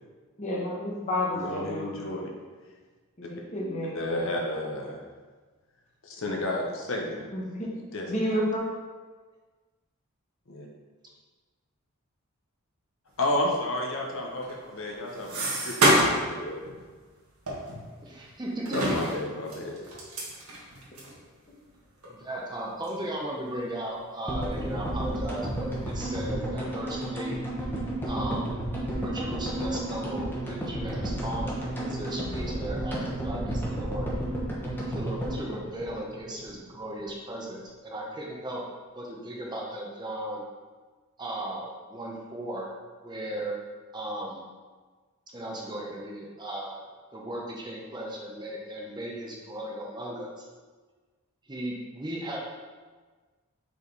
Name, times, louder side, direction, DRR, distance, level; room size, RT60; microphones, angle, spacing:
voice 1, 0.4-2.0 3.2-4.0 7.3-7.7 8.1-8.6, left 1 dB, 30° left, -3 dB, 1.3 m, -30 dB
voice 2, 1.3-2.3 3.9-5.0 6.0-7.2 7.9-8.1 10.5-10.7 13.2-16.6 18.7-19.8, left 1 dB, 60° left, -1 dB, 0.9 m, -31 dB
sound 1, 14.4-16.3 16.7-16.8 17.5-18.3 18.6-21.1 21.7-21.8 22.0-22.1 22.8-23.1 23.5-24.2 24.5-25.2, right 1 dB, 75° right, 1.6 m, -28 dB
voice 3, 18.0-19.0 22.1-27.4 28.1-28.6 29.0-34.1 34.9-38.6 38.9-40.4 41.2-42.7 43.0-43.6 43.9-44.4 45.3-46.9 47.1-50.5 51.5-52.4, right 1 dB, 20° right, -2 dB, 0.7 m, -36 dB
sound 2, 24.3-36.5 36.8-36.9 37.0-37.1, right 1 dB, 10° left, 1.1 m, -32 dB
5.2 x 5.0 x 4.0 m, 1.4 s
head